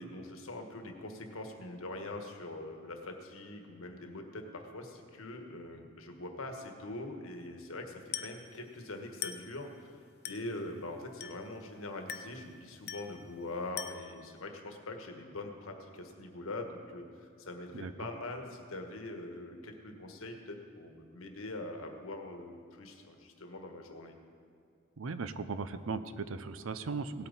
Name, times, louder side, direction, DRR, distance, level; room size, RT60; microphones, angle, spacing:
voice 1, 0.0-9.9 10.2-24.1, left 2 dB, 90° left, 4 dB, 1.4 m, -43 dB
Glass, 8.1-8.5 9.2-9.6 10.2-10.6 11.2-11.5 12.1-12.4 12.9-13.2 13.8-14.2, left 9 dB, 50° left, 0.7 m, -41 dB
voice 2, 17.7-18.1 25.0-27.3, right 4 dB, 75° right, 12 dB, 0.6 m, -38 dB
17.5 x 8.6 x 4.0 m, 2.4 s
head